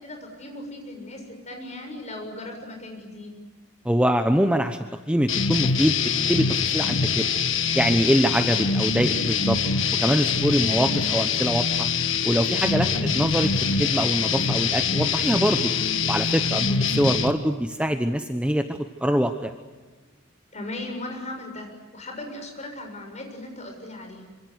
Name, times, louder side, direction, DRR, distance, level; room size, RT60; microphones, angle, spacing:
voice 1, 0.0-3.3 10.6-11.0 12.8-13.2 15.7-16.0 16.6-16.9 20.5-24.3, left 1 dB, 35° left, 4 dB, 7.0 m, -37 dB
voice 2, 3.8-4.8 5.1-7.2 7.7-9.6 10.0-11.9 12.2-12.9 13.1-15.7 16.1-16.7 17.0-19.5, equal, 5° right, 7 dB, 1.0 m, -24 dB
sound 1, 5.3-17.3, left 5 dB, 60° left, 1.7 m, -24 dB
26.0 x 26.0 x 8.1 m, 1.3 s
head